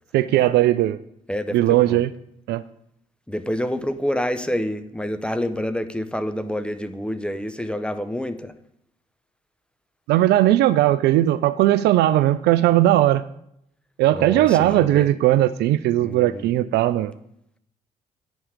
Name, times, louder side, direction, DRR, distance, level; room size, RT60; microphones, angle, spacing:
voice 1, 0.1-1.0 1.5-2.1 2.5-2.6 10.1-13.2 14.0-17.1, right 14 dB, 60° right, 15 dB, 0.4 m, -18 dB
voice 2, 1.3-2.0 3.3-8.5 14.1-15.1 16.0-16.5, equal, 5° left, 10 dB, 0.8 m, -28 dB
9.7 x 5.5 x 5.2 m, 0.75 s
figure-of-eight pair, 45°, 19 cm